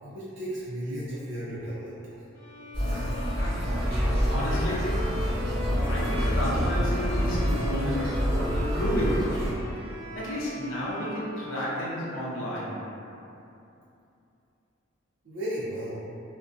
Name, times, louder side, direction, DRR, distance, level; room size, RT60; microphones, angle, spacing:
voice 1, 0.0-1.9 15.2-16.0, equal, 75° right, -9 dB, 0.5 m, -34 dB
Bowed string instrument, 2.3-12.1, left 1 dB, 15° left, 0.5 m, -40 dB
sound 1, 2.7-9.5, equal, 30° right, 0.9 m, -27 dB
voice 2, 3.3-5.2 5.9-9.5 10.1-12.9, equal, 80° left, -6 dB, 0.6 m, -32 dB
2.4 x 2.1 x 2.4 m, 2.8 s
head